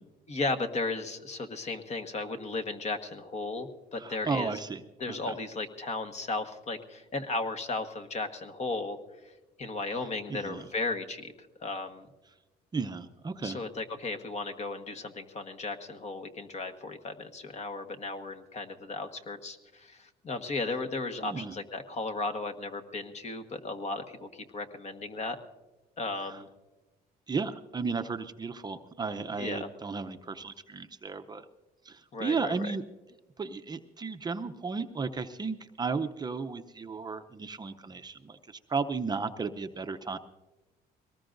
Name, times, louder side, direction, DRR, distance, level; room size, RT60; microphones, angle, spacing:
voice 1, 0.3-4.6 5.0-9.0 9.2-11.3 11.6-12.1 13.4-25.4 26.0-26.5 29.4-29.7 32.1-32.5, left 3 dB, 40° left, 7 dB, 1.4 m, -35 dB
voice 2, 4.0-4.8 5.1-5.4 10.3-10.6 12.7-13.6 21.2-21.5 26.2-26.4 27.3-31.5 31.8-32.8 33.4-40.2, right 4 dB, 25° right, 7 dB, 0.6 m, -34 dB
22.5 x 19.0 x 2.6 m, 1.1 s
cardioid pair, 110°, 17 cm